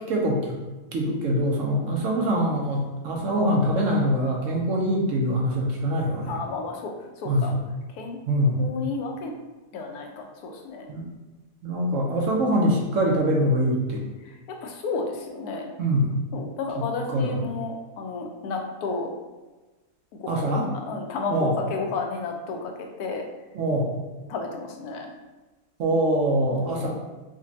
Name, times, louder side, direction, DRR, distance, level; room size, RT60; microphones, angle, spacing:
voice 1, 0.1-0.6 0.9-6.4 7.2-7.6 8.3-8.6 10.9-11.0 11.6-14.0 15.8-16.1 16.8-17.4 20.3-20.7 21.3-21.6 23.5-23.9 25.8-26.9, equal, 65° right, -1 dB, 0.9 m, -24 dB
voice 2, 6.3-7.5 8.0-8.2 8.6-9.3 9.7-10.9 12.5-12.6 14.2-15.7 16.3-19.1 20.2-20.5 20.9-22.7 23.0-23.2 24.3-25.1 26.5-26.9, left 4 dB, 85° left, 2 dB, 1.1 m, -32 dB
4.9 x 2.2 x 2.7 m, 1.2 s
omnidirectional pair, 1.6 m